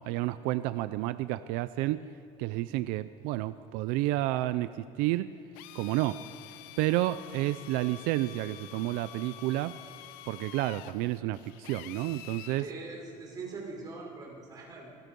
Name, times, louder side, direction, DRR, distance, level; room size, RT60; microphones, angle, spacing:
voice 1, 0.1-2.0 2.4-5.3 5.7-6.2 6.8-9.8 10.3-12.6, right 16 dB, 90° right, 13 dB, 0.6 m, -30 dB
Drill, 5.5-12.7, left 15 dB, 85° left, 0.8 m, -48 dB
voice 2, 12.6-15.0, right 4 dB, 25° right, -1 dB, 5.3 m, -42 dB
27.0 x 20.0 x 5.4 m, 2.4 s
cardioid pair, 155°, 14 cm